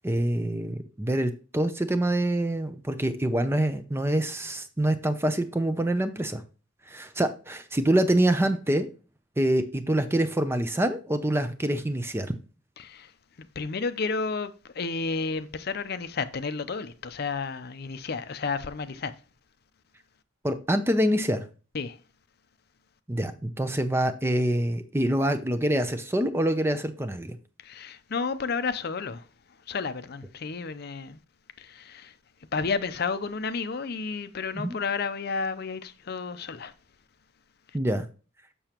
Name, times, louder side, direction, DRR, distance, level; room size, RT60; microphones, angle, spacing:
voice 1, 0.0-6.4 6.9-8.9 9.4-12.3 20.4-21.4 23.1-27.4 34.6-34.8 37.7-38.1, right 1 dB, 10° right, 0.5 m, -26 dB
voice 2, 12.8-13.1 13.4-19.1 21.7-22.0 27.6-29.2 29.7-31.2 31.6-32.1 32.5-36.7, left 4 dB, 50° left, 0.5 m, -31 dB
6.9 x 6.8 x 2.9 m
head